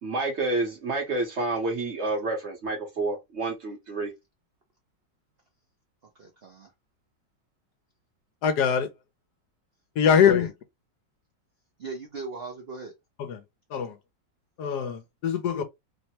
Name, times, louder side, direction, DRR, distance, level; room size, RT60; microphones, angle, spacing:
voice 1, 0.0-4.1, right 2 dB, 50° right, 1.0 m, -29 dB
voice 2, 6.2-6.7 10.0-10.5 11.8-12.9, right 4 dB, 80° right, 0.5 m, -38 dB
voice 3, 8.4-8.9 10.0-10.5 13.2-13.4 13.7-14.0 14.6-15.6, left 7 dB, 75° left, 1.1 m, -23 dB
3.3 x 2.1 x 2.7 m
omnidirectional pair, 1.9 m